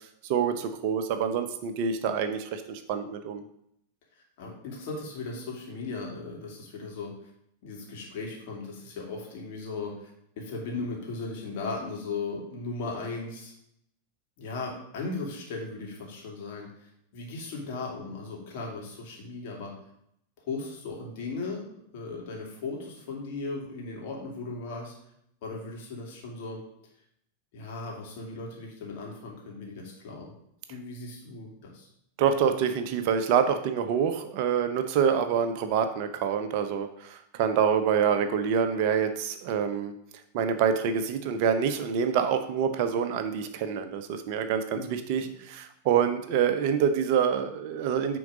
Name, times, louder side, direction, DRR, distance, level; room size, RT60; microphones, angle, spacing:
voice 1, 0.3-3.4 32.2-39.9 40.3-48.2, right 7 dB, 45° right, 8 dB, 0.7 m, -26 dB
voice 2, 4.4-7.1 7.6-10.1 10.4-13.5 14.4-19.7 20.5-21.6 21.9-24.9 25.4-26.6 27.5-30.3 30.7-31.9 44.7-44.9 45.2-45.3, left 3 dB, 50° left, -1 dB, 2.4 m, -37 dB
9.4 x 3.9 x 5.1 m, 0.74 s
figure-of-eight pair, 90°, 0 cm